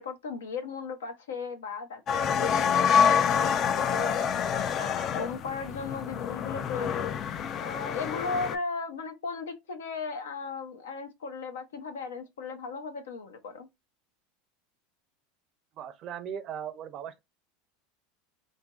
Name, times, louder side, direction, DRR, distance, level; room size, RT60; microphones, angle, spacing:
voice 1, 0.0-7.2 7.6-13.7, left 4 dB, 90° left, 0.7 m, -36 dB
sound 1, 2.1-8.6, left 7 dB, 40° left, 0.3 m, -27 dB
voice 2, 15.8-17.2, right 9 dB, 45° right, 0.5 m, -38 dB
3.0 x 2.5 x 2.3 m
supercardioid pair, 105°, 0 cm